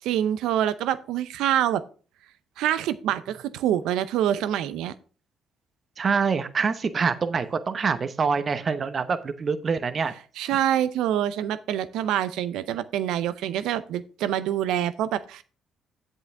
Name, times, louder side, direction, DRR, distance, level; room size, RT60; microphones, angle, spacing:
voice 1, 0.0-1.8 2.6-4.9 10.4-15.4, right 11 dB, 80° right, 14 dB, 0.6 m, -26 dB
voice 2, 6.0-10.1, right 5 dB, 45° right, 11 dB, 0.9 m, -25 dB
8.2 x 7.9 x 3.5 m, 0.38 s
supercardioid pair, 60°, 0 cm